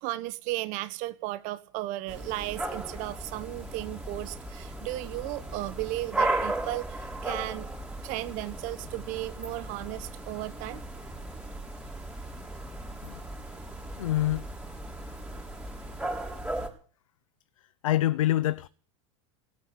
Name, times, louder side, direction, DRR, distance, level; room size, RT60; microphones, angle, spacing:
voice 1, 0.0-7.7 8.0-10.8, right 17 dB, 50° right, 1.2 m, -35 dB
sound 1, 2.1-16.7, right 2 dB, 5° right, 4.5 m, -36 dB
voice 2, 14.0-14.5 17.8-18.7, left 14 dB, 85° left, 0.7 m, -25 dB
17.0 x 9.5 x 8.9 m
supercardioid pair, 120°, 17 cm